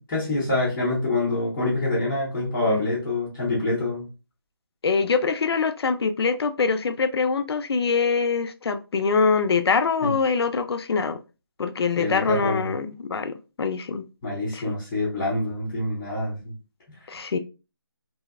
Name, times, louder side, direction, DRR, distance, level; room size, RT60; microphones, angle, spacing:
voice 1, 0.1-4.1 10.0-10.1 12.0-12.7 14.2-16.5, left 2 dB, 10° left, 0.5 m, -26 dB
voice 2, 4.8-11.2 11.6-14.1 14.5-14.6 17.1-17.4, left 5 dB, 70° left, 0.4 m, -24 dB
2.6 x 2.0 x 2.3 m
figure-of-eight pair, 165°, 14 cm